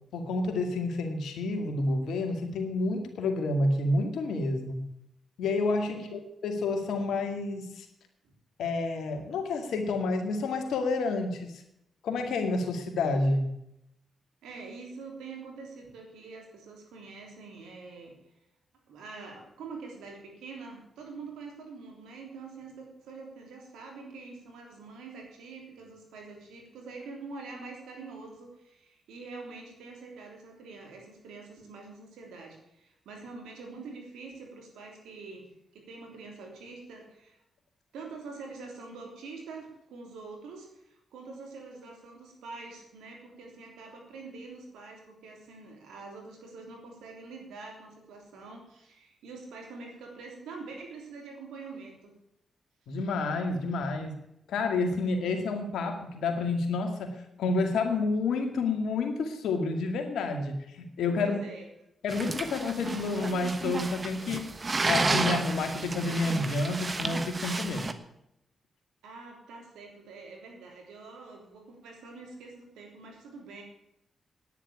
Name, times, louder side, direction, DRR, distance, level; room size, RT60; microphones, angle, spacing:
voice 1, 0.1-4.8 5.4-7.9 8.6-11.6 12.0-13.5 52.9-54.1 54.5-61.4 62.0-64.4 64.8-67.9, left 3 dB, 80° left, 5 dB, 2.2 m, -29 dB
voice 2, 5.9-6.2 8.2-8.3 14.4-18.2 18.9-37.4 37.9-52.1 61.1-61.7 69.0-73.6, right 4 dB, 90° right, 2 dB, 3.4 m, -45 dB
sound 1, 62.1-67.9, right 3 dB, 40° right, 1.3 m, -32 dB
10.0 x 9.9 x 8.6 m, 0.80 s
supercardioid pair, 50°, 0 cm